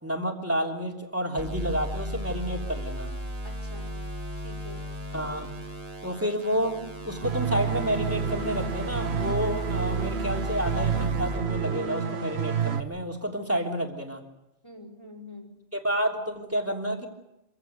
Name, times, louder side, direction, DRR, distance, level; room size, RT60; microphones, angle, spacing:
voice 1, 0.0-3.1 5.1-5.5 6.0-6.8 7.0-14.2 15.7-17.1, equal, 15° right, 0 dB, 3.3 m, -30 dB
sound 1, 1.4-11.4, equal, 35° right, 2.8 m, -35 dB
voice 2, 3.4-4.0 4.4-5.0 14.6-15.6, left 1 dB, 25° left, -1 dB, 4.8 m, -46 dB
sound 2, 7.2-12.8, right 7 dB, 80° right, 1.3 m, -29 dB
26.0 x 16.0 x 8.3 m, 0.90 s
omnidirectional pair, 1.1 m